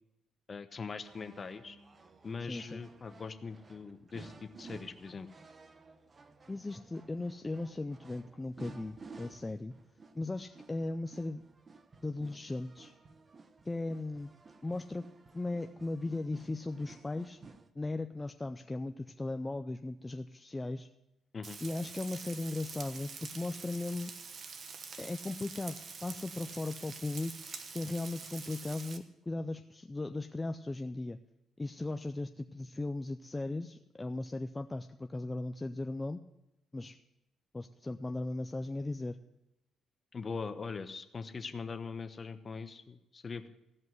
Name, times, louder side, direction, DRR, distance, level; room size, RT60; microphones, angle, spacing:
voice 1, 0.5-1.8 2.2-5.3 21.3-21.6 40.1-43.5, left 5 dB, 35° left, 10 dB, 0.9 m, -41 dB
sound 1, 1.0-17.7, right 4 dB, 35° right, 0.8 m, -55 dB
voice 2, 2.5-2.8 6.5-9.7 10.1-11.4 12.0-12.9 13.7-14.3 14.6-15.0 15.3-17.4 17.8-20.9 21.6-24.1 25.0-27.3 27.7-31.2 31.6-36.2 36.7-37.0 37.5-39.2, left 2 dB, 20° left, 7 dB, 0.5 m, -37 dB
Frying (food), 21.4-29.0, right 5 dB, 50° right, 1.1 m, -46 dB
16.0 x 5.5 x 7.8 m, 0.89 s
cardioid pair, 90°, 0 cm